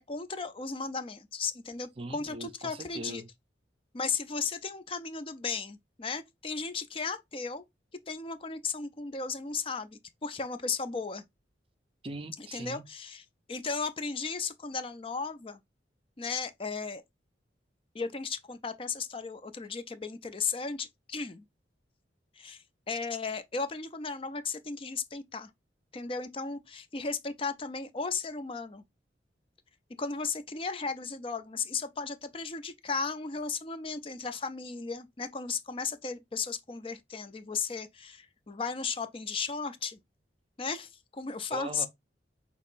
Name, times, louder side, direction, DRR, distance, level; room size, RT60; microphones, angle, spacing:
voice 1, 0.1-3.2 3.9-7.6 8.1-11.2 12.4-15.6 16.2-17.0 17.9-21.4 22.4-25.5 25.9-28.8 30.0-40.0 40.6-41.9, left 5 dB, 30° left, 0.5 m, -35 dB
voice 2, 2.0-3.3 12.0-12.8 41.5-41.9, right 2 dB, 30° right, 0.5 m, -40 dB
6.2 x 3.0 x 2.5 m
head